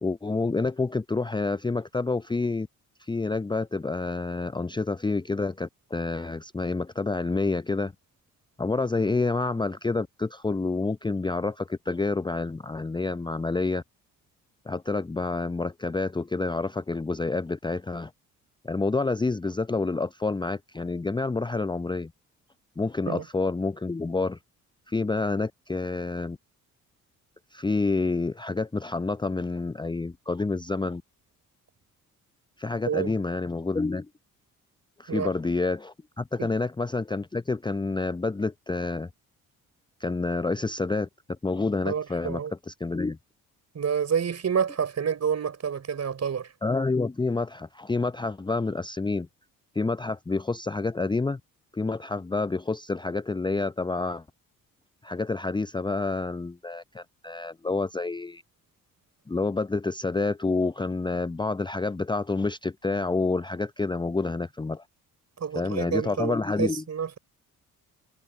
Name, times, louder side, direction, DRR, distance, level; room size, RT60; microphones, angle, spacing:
voice 1, 0.0-2.7 3.0-7.9 8.6-13.8 14.6-18.1 18.6-22.1 22.8-24.4 24.9-26.4 27.5-31.0 32.6-34.1 35.0-39.1 40.0-41.1 41.4-42.4 42.7-43.2 46.6-49.3 49.7-51.4 51.7-54.2 55.0-58.4 59.3-64.8 65.5-66.8, left 3 dB, 10° left, 0.8 m, -28 dB
voice 2, 41.8-42.5 43.7-46.5 65.4-67.2, right 7 dB, 40° right, 5.7 m, -28 dB
figure-of-eight pair, 45°, 41 cm